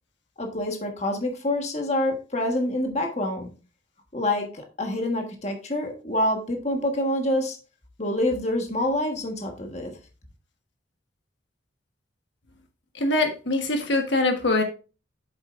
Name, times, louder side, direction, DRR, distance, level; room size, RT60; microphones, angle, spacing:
voice 1, 0.4-3.5 4.1-7.6 8.0-9.9, left 1 dB, 35° left, 3 dB, 1.4 m, -26 dB
voice 2, 12.9-14.6, left 2 dB, 70° left, 4 dB, 1.3 m, -23 dB
8.3 x 7.2 x 2.5 m, 0.33 s
head